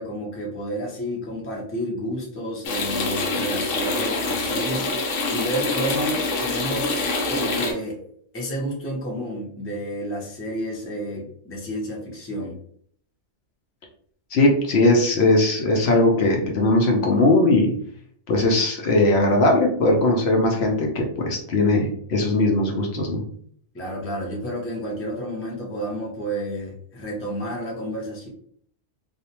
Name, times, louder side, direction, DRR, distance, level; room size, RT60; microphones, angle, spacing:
voice 1, 0.0-4.9 5.3-8.0 8.3-12.6 23.7-28.3, equal, 15° left, -2 dB, 0.5 m, -30 dB
sound 1, 2.6-7.7, left 3 dB, 90° left, 1.0 m, -25 dB
voice 2, 14.3-17.7 18.3-23.2, left 2 dB, 65° left, 1 dB, 0.8 m, -19 dB
2.5 x 2.1 x 2.8 m, 0.62 s
omnidirectional pair, 1.2 m